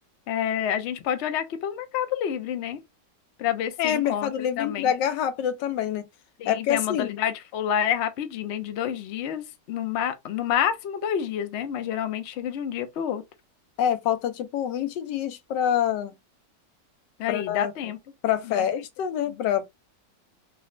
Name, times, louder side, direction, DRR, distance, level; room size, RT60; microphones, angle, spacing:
voice 1, 0.3-2.8 3.4-4.9 6.4-13.2 17.2-18.0 18.5-18.6 19.3-19.4, left 9 dB, 70° left, 0.6 m, -28 dB
voice 2, 3.8-6.1 6.4-7.1 13.8-16.1 17.3-17.7 18.2-19.6, left 9 dB, 85° left, 1.3 m, -26 dB
4.0 x 2.0 x 2.4 m
omnidirectional pair, 1.9 m